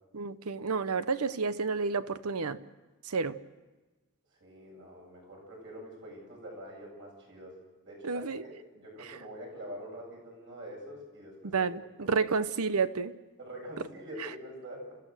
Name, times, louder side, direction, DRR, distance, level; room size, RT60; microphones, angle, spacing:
voice 1, 0.1-2.6 3.1-3.4 8.0-8.4 11.5-13.1, right 4 dB, 80° right, 14 dB, 0.9 m, -30 dB
voice 2, 4.4-7.6 7.8-11.6 12.0-12.2 13.4-14.9, equal, 60° right, -1 dB, 8.0 m, -45 dB
30.0 x 15.0 x 6.5 m, 1.2 s
head